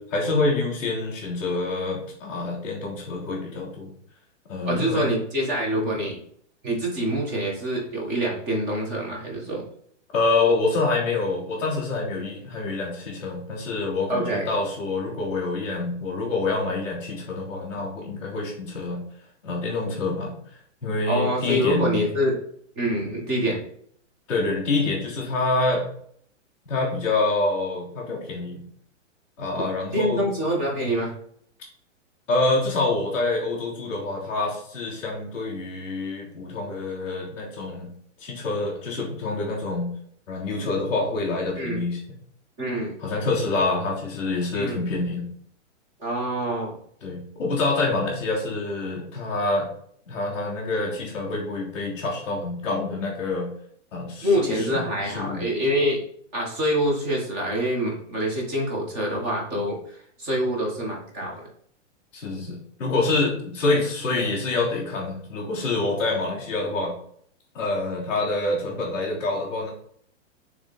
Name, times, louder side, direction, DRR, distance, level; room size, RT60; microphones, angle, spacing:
voice 1, 0.0-3.9 4.5-5.1 10.1-19.0 19.4-20.3 20.8-22.0 24.3-25.8 26.7-28.6 29.4-30.3 32.3-37.9 38.2-39.9 40.3-42.0 43.0-45.2 47.0-49.7 50.1-53.5 53.9-54.7 55.1-55.4 62.1-66.9 67.5-69.7, left 3 dB, 5° left, -9 dB, 0.4 m, -26 dB
voice 2, 4.6-6.2 6.6-9.6 14.1-14.4 21.1-22.4 22.7-23.6 29.9-31.1 41.6-41.8 42.6-42.9 44.5-44.8 46.0-46.8 54.2-56.0 56.3-61.5, equal, 25° right, -1 dB, 1.5 m, -25 dB
6.6 x 3.5 x 4.2 m, 0.65 s
hypercardioid pair, 170°, 37 cm